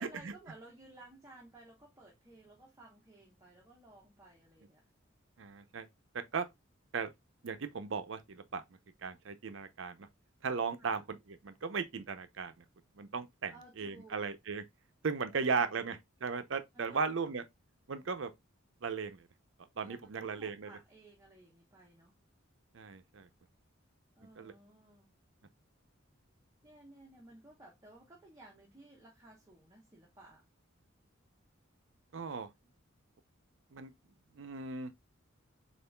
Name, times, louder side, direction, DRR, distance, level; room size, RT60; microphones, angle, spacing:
voice 1, 0.0-4.8 10.8-11.1 13.5-14.3 15.3-15.9 16.7-17.0 19.8-22.2 24.2-25.1 26.6-30.4, right 2 dB, 15° right, 1.0 m, -57 dB
voice 2, 5.4-5.9 6.3-6.5 6.9-7.1 7.4-8.6 9.0-10.1 10.4-11.0 11.4-12.6 13.0-14.6 15.0-17.4 17.9-18.3 18.8-19.3 19.8-20.7 22.7-23.3 24.4-24.5 32.1-32.5 33.7-33.9 34.3-34.9, right 5 dB, 65° right, 0.6 m, -36 dB
6.6 x 2.5 x 2.2 m
head